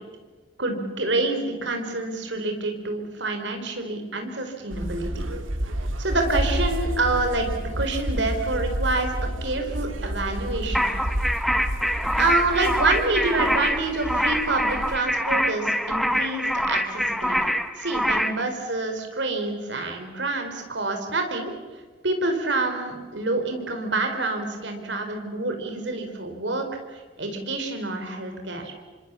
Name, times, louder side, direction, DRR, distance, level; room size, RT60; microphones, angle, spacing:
voice 1, 0.6-5.3 6.0-9.1 9.4-10.9 12.2-17.4 17.8-21.5 22.0-26.6 27.2-28.7, right 2 dB, 65° right, 5 dB, 4.2 m, -27 dB
sound 1, 4.7-15.0, right 1 dB, 90° right, 2.2 m, -30 dB
sound 2, 10.7-18.4, equal, ahead, 0.9 m, -25 dB
27.5 x 25.0 x 7.1 m, 1.4 s
head